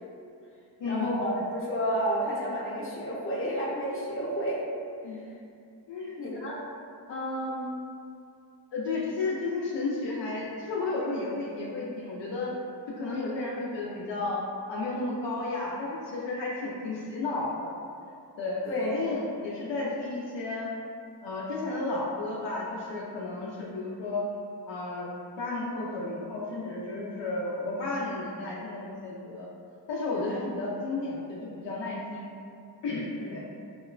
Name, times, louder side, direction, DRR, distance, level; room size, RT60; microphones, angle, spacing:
voice 1, 0.9-4.6 6.2-6.6 18.7-18.9 30.1-30.4 33.1-33.3, equal, 30° left, -6 dB, 0.7 m, -31 dB
voice 2, 5.9-6.2 7.1-7.7 8.7-12.5 13.0-14.4 14.7-17.7 18.4-20.7 21.2-24.2 24.7-25.1 25.4-29.5 29.9-32.3 32.8-33.4, left 3 dB, 70° left, -4 dB, 0.5 m, -33 dB
2.9 x 2.1 x 2.3 m, 2.4 s
cardioid pair, 45°, 44 cm